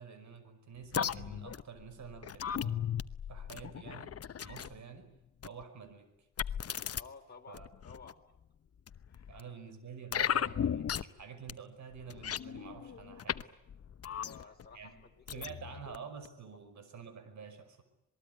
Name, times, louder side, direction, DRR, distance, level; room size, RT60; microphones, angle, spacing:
voice 1, 0.0-2.9 3.3-5.1 5.4-6.3 7.5-7.7 9.3-13.6 14.1-14.9 15.3-17.8, right 6 dB, 65° right, 11 dB, 5.6 m, -49 dB
sound 1, 0.9-4.8 5.4-5.6 6.4-7.0 7.5-8.1 8.9-9.4 10.1-11.2 11.5-11.6 11.9-13.4 13.7-14.7 15.3-16.0 16.2-16.3, left 8 dB, 50° left, 1.0 m, -36 dB
voice 2, 6.9-8.2 9.1-9.3 14.1-15.1 15.4-15.6, left 5 dB, 30° left, 2 dB, 4.3 m, -54 dB
27.0 x 20.5 x 9.5 m, 0.84 s
cardioid pair, 75°, 31 cm